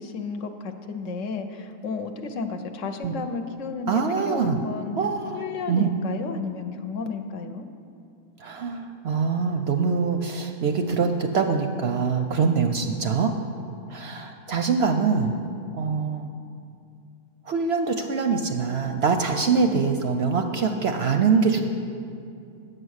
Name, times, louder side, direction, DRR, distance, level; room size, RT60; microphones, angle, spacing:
voice 1, 0.0-5.0 5.3-7.7 19.7-19.9, left 4 dB, 65° left, 7 dB, 1.0 m, -32 dB
voice 2, 3.9-4.6 5.0-5.9 8.4-13.3 13.9-15.3 15.7-16.3 17.5-21.6, right 5 dB, 65° right, 5 dB, 0.7 m, -24 dB
9.7 x 7.7 x 6.4 m, 2.5 s
omnidirectional pair, 1.5 m